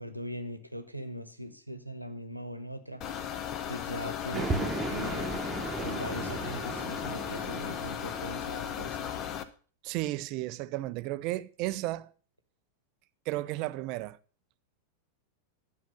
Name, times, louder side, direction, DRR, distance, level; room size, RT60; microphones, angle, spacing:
voice 1, 0.0-3.0 3.6-5.3 5.8-9.1, equal, 90° right, 1.2 m, -40 dB
sound 1, 3.0-9.4, left 9 dB, 35° left, 0.9 m, -36 dB
sound 2, 4.3-9.0, right 3 dB, 15° right, 1.3 m, -36 dB
voice 2, 9.8-12.1 13.3-14.2, right 17 dB, 45° right, 0.5 m, -33 dB
11.5 x 5.9 x 6.9 m
figure-of-eight pair, 90°, 0 cm